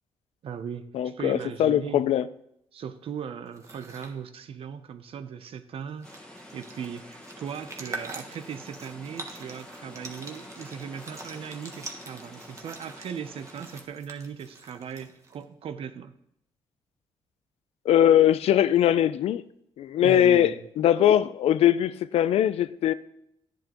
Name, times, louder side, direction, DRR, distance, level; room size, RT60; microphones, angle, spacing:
voice 1, 0.4-2.1 2.7-16.1 20.0-20.7, right 7 dB, 70° right, 10 dB, 0.7 m, -38 dB
voice 2, 0.9-2.3 17.9-19.4 19.8-22.9, left 11 dB, 90° left, 15 dB, 0.4 m, -21 dB
sound 1, 3.5-4.1 5.6-5.7 5.9-15.4, right 2 dB, 30° right, 1.2 m, -44 dB
sound 2, 6.0-13.8, left 1 dB, 10° left, 1.5 m, -47 dB
11.0 x 10.5 x 3.0 m, 0.75 s
cardioid pair, 115°, 10 cm